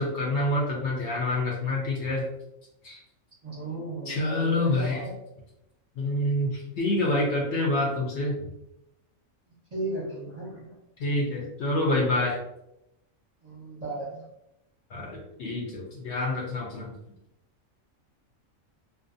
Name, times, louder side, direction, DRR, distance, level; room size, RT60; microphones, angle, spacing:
voice 1, 0.0-2.2 2.8-3.0 4.1-5.0 6.0-8.4 11.0-12.4 14.9-17.0, left 2 dB, 65° left, -2 dB, 0.8 m, -27 dB
voice 2, 3.4-5.1 9.5-10.8 13.4-14.3, right 2 dB, 35° right, -8 dB, 0.7 m, -36 dB
2.5 x 2.2 x 2.5 m, 0.87 s
omnidirectional pair, 1.4 m